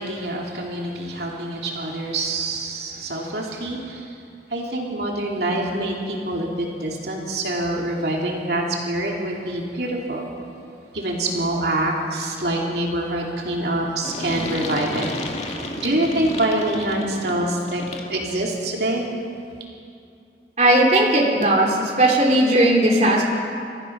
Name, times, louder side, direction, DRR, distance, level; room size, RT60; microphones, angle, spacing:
voice 1, 0.0-4.1 4.5-10.3 10.9-15.5 15.8-17.8 18.1-19.0, right 1 dB, 65° right, -1 dB, 2.9 m, -25 dB
sound 1, 14.0-18.2, left 1 dB, 40° left, 2.1 m, -31 dB
voice 2, 20.6-23.2, right 1 dB, 40° right, -1 dB, 2.8 m, -17 dB
29.5 x 15.0 x 6.0 m, 2.5 s
head